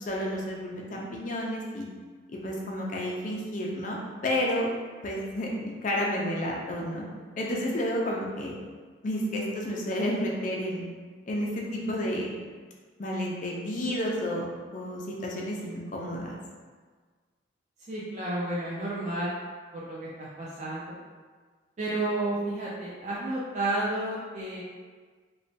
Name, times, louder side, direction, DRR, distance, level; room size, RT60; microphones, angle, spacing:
voice 1, 0.0-1.9 2.3-4.7 5.0-7.0 7.4-8.5 9.0-10.8 11.3-12.4 13.0-14.5 14.7-16.4, equal, 40° left, -2 dB, 0.4 m, -31 dB
voice 2, 17.9-19.3 19.7-21.0 21.8-24.6, right 2 dB, 35° right, -7 dB, 0.3 m, -31 dB
3.0 x 2.2 x 2.6 m, 1.5 s
head